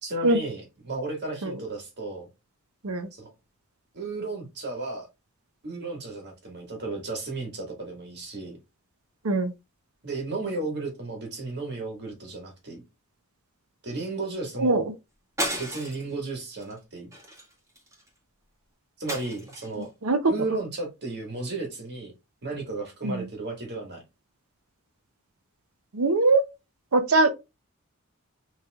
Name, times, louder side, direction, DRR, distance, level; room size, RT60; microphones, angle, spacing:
voice 1, 0.0-2.3 3.1-3.3 3.9-5.1 5.6-8.6 10.0-12.8 13.8-14.9 15.6-17.1 19.0-19.9 20.3-22.1 22.4-24.0, right 3 dB, 55° right, 1.8 m, -34 dB
sound 1, 15.4-16.1 16.6-16.8 17.1-18.1 19.1-19.8, right 1 dB, 15° right, 1.6 m, -33 dB
voice 2, 25.9-26.4 26.9-27.3, right 2 dB, 75° right, 0.7 m, -21 dB
6.3 x 3.3 x 2.3 m
head